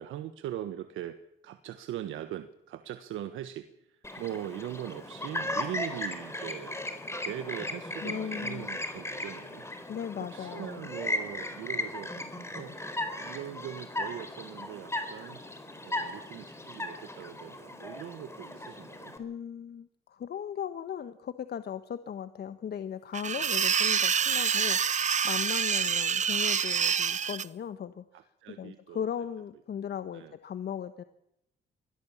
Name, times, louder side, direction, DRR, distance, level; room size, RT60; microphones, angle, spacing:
voice 1, 0.0-6.8 7.2-9.6 10.3-12.1 12.5-12.8 13.2-15.4 15.8-19.1 23.2-23.5 24.5-24.7 25.8-25.9 28.1-29.1 30.1-30.3, right 12 dB, 85° right, 10 dB, 1.4 m, -41 dB
Chirp tweet, 4.0-19.2, left 1 dB, 15° left, 4.2 m, -37 dB
voice 2, 8.0-8.7 9.9-10.9 19.2-28.0 28.6-31.0, left 8 dB, 55° left, 11 dB, 1.2 m, -37 dB
sound 1, 23.1-27.4, right 7 dB, 35° right, 0.7 m, -27 dB
23.5 x 17.0 x 7.3 m, 0.82 s
cardioid pair, 90°, 20 cm